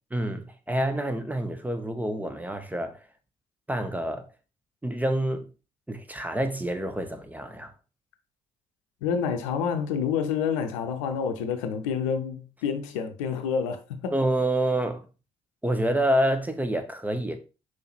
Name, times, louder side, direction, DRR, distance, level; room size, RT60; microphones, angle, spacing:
voice 1, 0.1-3.0 3.7-4.3 4.8-5.5 5.9-7.7 14.1-15.1 15.6-17.4, right 1 dB, 10° right, 1.4 m, -27 dB
voice 2, 9.0-14.1, left 7 dB, 80° left, 0.8 m, -28 dB
5.5 x 4.8 x 4.4 m
hypercardioid pair, 45°, 16 cm